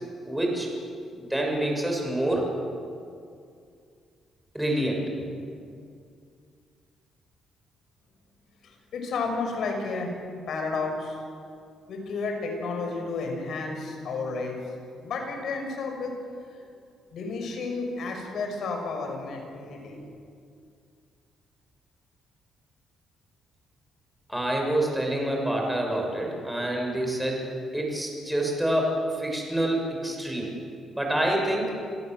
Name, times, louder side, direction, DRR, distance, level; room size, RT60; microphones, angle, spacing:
voice 1, 0.3-0.7 1.1-2.5 4.5-5.0 24.3-27.5 27.7-30.5 30.9-31.7, right 1 dB, 5° right, 0 dB, 6.9 m, -27 dB
voice 2, 8.6-10.1 10.5-11.2 11.9-14.6 14.9-16.1 16.5-16.6 17.1-20.0, left 3 dB, 65° left, 2 dB, 6.3 m, -32 dB
29.0 x 16.5 x 7.9 m, 2.4 s
cardioid pair, 90°, 0 cm